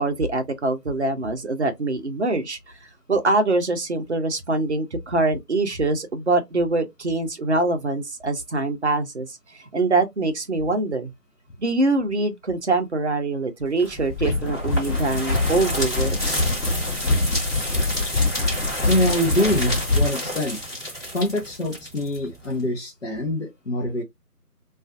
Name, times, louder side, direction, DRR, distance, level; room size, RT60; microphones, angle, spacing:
voice 1, 0.0-2.6 3.1-11.1 11.6-16.5, right 2 dB, 50° right, 0.5 m, -24 dB
sound 1, 13.8-22.6, equal, 10° left, 1.2 m, -30 dB
sound 2, 14.1-20.1, left 2 dB, 90° left, 0.8 m, -24 dB
voice 2, 18.8-20.6 21.1-24.0, left 1 dB, 50° left, 0.7 m, -24 dB
2.4 x 2.3 x 2.4 m
figure-of-eight pair, 165°, 47 cm